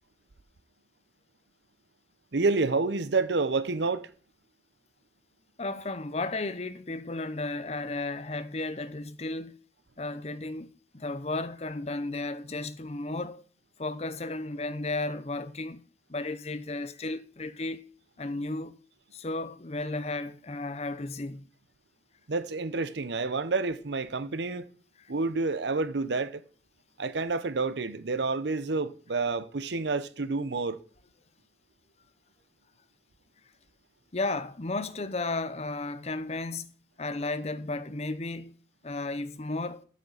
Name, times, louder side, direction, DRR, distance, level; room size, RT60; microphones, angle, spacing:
voice 1, 2.3-4.1 22.3-24.7 25.1-26.4 27.0-30.8, right 3 dB, 75° right, 0.8 m, -29 dB
voice 2, 5.6-9.6 10.0-13.4 13.8-15.8 16.1-17.8 18.2-18.8 19.1-21.5 34.1-36.7 37.0-38.6 38.8-39.8, left 2 dB, 35° left, 0.7 m, -34 dB
8.4 x 6.5 x 7.2 m
head